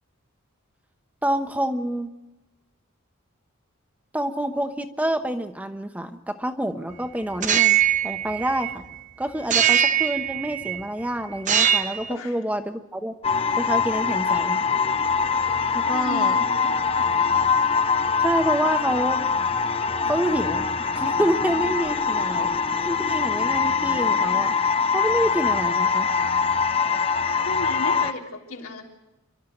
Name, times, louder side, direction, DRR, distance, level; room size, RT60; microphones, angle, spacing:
voice 1, 1.2-2.1 4.1-7.8 8.0-8.8 9.2-13.1 13.6-14.6 15.7-16.4 18.2-19.2 20.1-22.5 22.9-24.5 24.9-26.1, right 1 dB, 5° right, 6 dB, 1.0 m, -27 dB
sound 1, 7.3-9.0 9.5-10.8 11.4-12.1, right 10 dB, 35° right, 0.8 m, -22 dB
voice 2, 12.1-12.4 13.9-14.0 15.8-17.1 27.4-28.8, left 2 dB, 90° left, 0 dB, 3.5 m, -35 dB
sound 2, 13.2-28.1, left 5 dB, 25° left, 0.7 m, -23 dB
29.0 x 12.5 x 7.9 m, 0.98 s
head